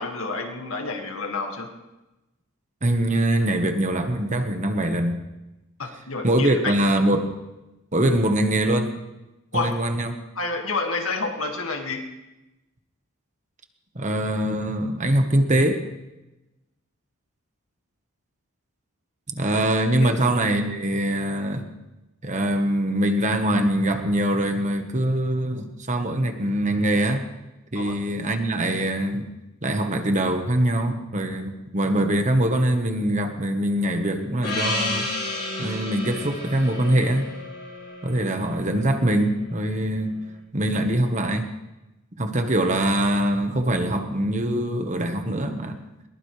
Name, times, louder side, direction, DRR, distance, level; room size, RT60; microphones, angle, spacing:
voice 1, 0.0-1.7 5.8-6.8 9.5-9.8 10.4-12.1 19.5-19.6 20.0-20.2 27.8-28.0, left 3 dB, 65° left, 3 dB, 2.1 m, -29 dB
voice 2, 2.8-5.2 6.2-7.3 7.9-8.9 9.5-10.2 13.9-15.8 19.3-21.7 22.2-27.2 27.7-29.3 29.6-35.1 35.6-37.3 38.0-40.2 40.5-41.5 42.2-45.8, right 1 dB, 35° right, 6 dB, 1.3 m, -23 dB
Gong, 34.4-39.2, left 2 dB, 45° left, 4.5 m, -31 dB
21.5 x 20.0 x 3.3 m, 1.0 s
head